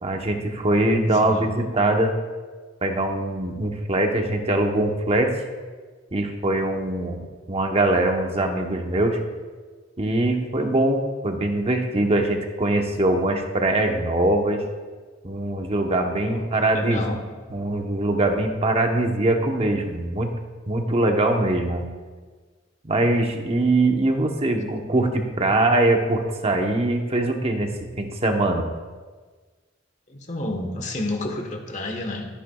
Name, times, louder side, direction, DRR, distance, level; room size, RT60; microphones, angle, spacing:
voice 1, 0.0-2.1 2.8-5.3 6.1-9.2 10.0-14.6 15.2-17.0 17.5-20.3 20.7-21.8 22.8-27.7 28.0-28.7, right 2 dB, 35° right, 3 dB, 1.0 m, -22 dB
voice 2, 16.7-17.2 30.1-32.3, left 2 dB, 40° left, 4 dB, 1.2 m, -30 dB
13.5 x 10.0 x 2.3 m, 1.4 s
head